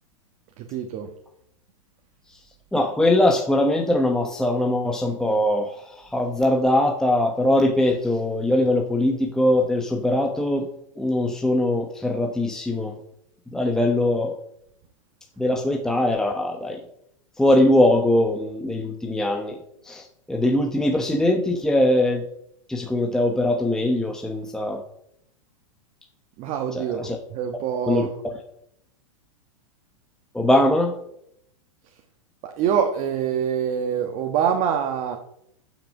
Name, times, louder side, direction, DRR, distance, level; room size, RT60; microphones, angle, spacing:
voice 1, 0.6-1.1 26.4-28.1 32.4-35.2, right 8 dB, 45° right, 4 dB, 1.4 m, -25 dB
voice 2, 2.7-10.7 11.0-12.9 13.5-14.3 15.4-16.8 17.4-19.6 19.8-22.3 22.7-24.8 26.7-27.2 27.9-28.1 30.3-30.9, left 1 dB, 5° left, 2 dB, 1.1 m, -21 dB
14.5 x 6.3 x 5.4 m, 0.75 s
hypercardioid pair, 110°, 18 cm